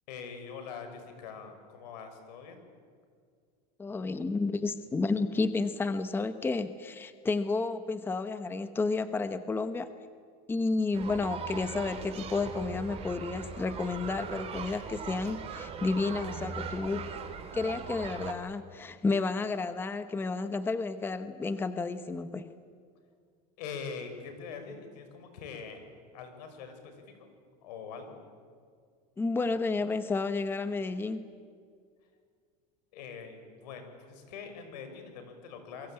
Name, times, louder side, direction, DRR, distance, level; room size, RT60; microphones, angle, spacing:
voice 1, 0.1-2.6 23.6-25.8 26.1-26.9 27.6-28.2 32.9-35.9, left 5 dB, 85° left, 7 dB, 5.8 m, -43 dB
voice 2, 3.8-9.9 10.5-17.0 17.5-22.5 29.2-31.2, left 3 dB, 10° left, 11 dB, 0.9 m, -31 dB
sound 1, 10.9-18.3, right 5 dB, 30° right, 3.0 m, -40 dB
27.0 x 22.5 x 8.8 m, 2.1 s
supercardioid pair, 150°, 21 cm